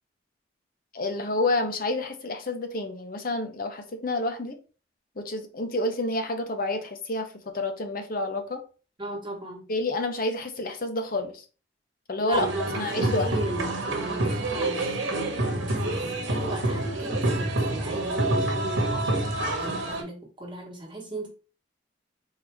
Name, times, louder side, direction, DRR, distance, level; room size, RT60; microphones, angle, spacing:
voice 1, 0.9-4.6 5.2-8.6 9.7-11.4 12.1-12.5 12.8-13.3, left 2 dB, 50° left, 0.8 m, -29 dB
voice 2, 9.0-9.7 12.2-13.7 14.0-15.0 15.5-21.3, right 2 dB, 25° right, 1.3 m, -36 dB
sound 1, 12.3-20.0, right 1 dB, 80° right, 1.2 m, -27 dB
4.0 x 2.8 x 4.5 m
head